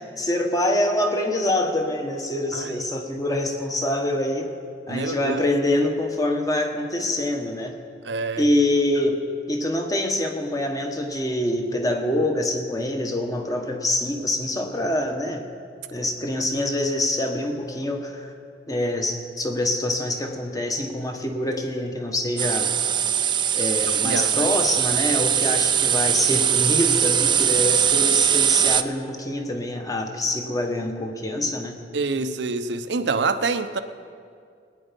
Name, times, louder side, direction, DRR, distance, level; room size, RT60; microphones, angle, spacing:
voice 1, 0.0-4.5 4.9-7.8 8.4-9.2 9.5-15.5 15.9-18.3 18.7-22.7 23.5-31.8, left 1 dB, 20° left, 3 dB, 1.3 m, -25 dB
voice 2, 4.9-5.4 8.0-8.4 24.0-24.5 31.9-33.8, right 3 dB, 90° right, 10 dB, 0.7 m, -26 dB
sound 1, 22.4-28.8, right 9 dB, 25° right, 0.4 m, -21 dB
20.5 x 9.3 x 5.3 m, 2.3 s
head